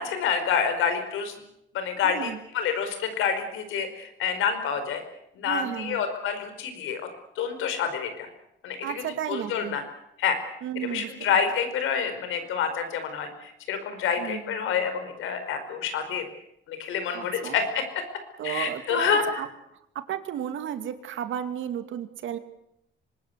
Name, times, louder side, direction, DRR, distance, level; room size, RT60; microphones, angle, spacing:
voice 1, 0.0-1.3 1.7-5.0 5.3-7.0 7.3-8.3 8.6-9.8 10.2-10.4 10.7-16.2 16.7-17.8 18.4-19.4, left 7 dB, 85° left, 8 dB, 5.1 m, -28 dB
voice 2, 2.0-2.4 5.4-6.0 8.8-9.8 10.6-11.4 14.2-14.5 17.1-17.6 18.4-19.5 19.9-22.4, right 10 dB, 80° right, 9 dB, 2.5 m, -33 dB
24.5 x 20.5 x 8.2 m, 0.79 s
cardioid pair, 90°, 20 cm